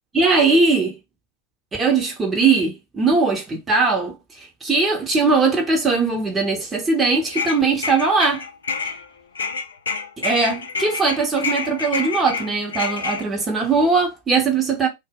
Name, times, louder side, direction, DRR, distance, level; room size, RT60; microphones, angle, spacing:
voice 1, 0.1-0.9 1.7-8.4 10.2-14.9, right 4 dB, 15° right, 0.7 m, -20 dB
sound 1, 7.0-9.1 9.3-13.2, left 5 dB, 70° left, 0.4 m, -28 dB
2.0 x 2.0 x 3.5 m
figure-of-eight pair, 90°, 0 cm